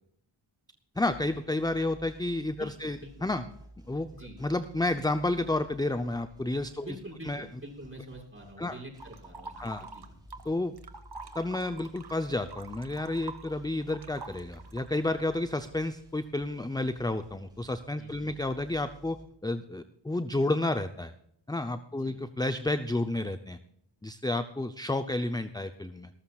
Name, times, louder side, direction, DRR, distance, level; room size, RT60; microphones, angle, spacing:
sound 1, 0.9-19.2, equal, 10° right, 4.8 m, -54 dB
voice 1, 1.0-3.4 3.9-4.1 4.4-6.8 7.3-7.5 8.6-8.7 9.6-9.8 10.5-10.7 11.3-21.1 21.5-23.6 24.0-26.1, left 2 dB, 10° left, 10 dB, 0.6 m, -31 dB
voice 2, 2.6-3.1 4.1-4.4 6.8-10.1 18.0-18.4 21.9-22.2, right 1 dB, 25° right, -3 dB, 6.2 m, -46 dB
sound 2, 9.0-10.5 10.8-15.2, right 3 dB, 55° right, 1.4 m, -45 dB
19.5 x 13.0 x 2.4 m, 0.74 s
cardioid pair, 50°, 47 cm